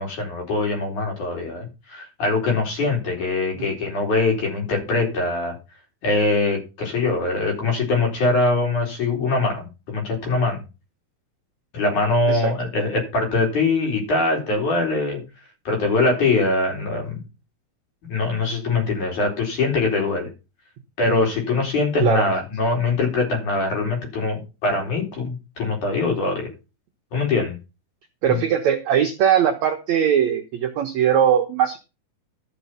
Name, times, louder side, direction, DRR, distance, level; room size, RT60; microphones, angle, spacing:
voice 1, 0.0-5.5 6.0-10.6 11.7-15.2 15.7-17.2 18.0-20.3 21.0-26.5 27.1-27.6 28.3-28.4, left 3 dB, 50° left, 1 dB, 5.4 m, -22 dB
voice 2, 28.2-31.8, right 9 dB, 75° right, 5 dB, 1.7 m, -20 dB
13.0 x 6.3 x 5.6 m, 0.29 s
omnidirectional pair, 4.7 m